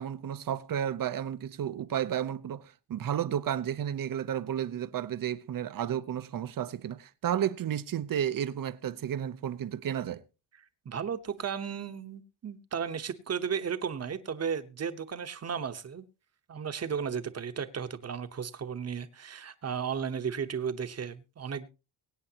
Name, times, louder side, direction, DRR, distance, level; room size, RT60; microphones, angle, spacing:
voice 1, 0.0-10.2, right 10 dB, 55° right, 0.8 m, -32 dB
voice 2, 10.8-16.0 16.5-21.7, right 7 dB, 40° right, 1.1 m, -34 dB
23.5 x 9.0 x 2.9 m
wide cardioid pair, 165°, 40 cm